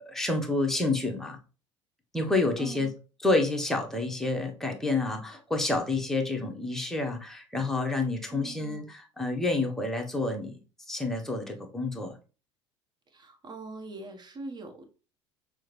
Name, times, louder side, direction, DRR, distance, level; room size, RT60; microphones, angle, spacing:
voice 1, 0.1-1.4 2.1-2.9 3.2-10.6 10.9-12.1, left 2 dB, 5° left, 2 dB, 0.9 m, -29 dB
voice 2, 2.6-2.9 8.3-8.9 13.1-14.9, right 2 dB, 25° right, 4 dB, 1.0 m, -42 dB
6.1 x 2.1 x 3.1 m, 0.34 s
figure-of-eight pair, 65°, 16 cm